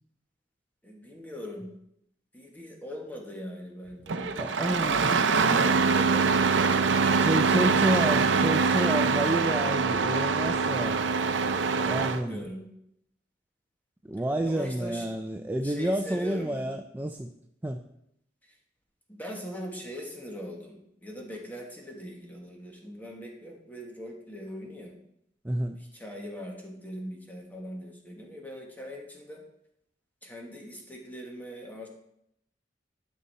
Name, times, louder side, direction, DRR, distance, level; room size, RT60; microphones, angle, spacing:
voice 1, 0.8-1.7 2.3-4.3 5.8-6.6 7.0-7.2 12.0-12.7 14.4-15.1 15.6-16.6 18.4-18.5 19.1-25.0 25.9-29.4 30.2-31.9, equal, 10° left, 0 dB, 1.6 m, -41 dB
Engine starting, 4.1-12.2, right 4 dB, 80° right, 0.6 m, -24 dB
voice 2, 4.4-5.3 7.2-11.0 11.8-12.4 14.0-17.3 17.6-17.8 25.4-25.8, right 1 dB, 10° right, 5 dB, 0.4 m, -30 dB
12.5 x 5.5 x 4.2 m, 0.76 s
head